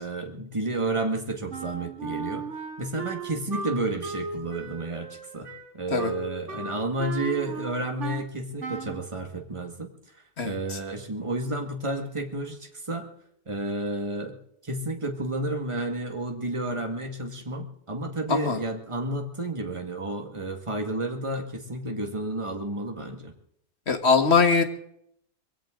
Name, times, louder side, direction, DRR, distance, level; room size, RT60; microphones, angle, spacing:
voice 1, 0.0-2.5 2.8-5.5 5.7-9.9 10.4-13.1 13.5-14.4 14.6-23.3, right 2 dB, 25° right, 4 dB, 1.9 m, -31 dB
Wind instrument woodwind instrument, 1.5-8.3 8.6-9.0, right 4 dB, 75° right, 2.2 m, -36 dB
voice 2, 23.9-24.6, left 5 dB, 60° left, 7 dB, 1.8 m, -21 dB
22.0 x 16.5 x 3.8 m, 0.70 s
omnidirectional pair, 1.3 m